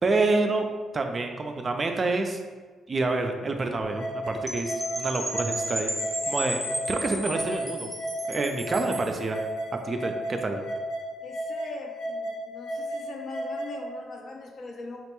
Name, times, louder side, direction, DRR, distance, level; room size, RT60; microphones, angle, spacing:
voice 1, 0.0-2.4 2.9-5.9 6.3-6.6 6.9-7.9 8.3-9.4 9.8-10.6, right 3 dB, 35° right, 4 dB, 0.3 m, -27 dB
sound 1, 3.8-13.8, equal, 75° left, 1.1 m, -34 dB
Percussion / Wind chime, 4.5-9.2, equal, ahead, 0.7 m, -33 dB
voice 2, 11.2-15.0, left 3 dB, 55° left, 1 dB, 0.5 m, -41 dB
3.8 x 2.1 x 2.9 m, 1.4 s
cardioid pair, 90°, 0 cm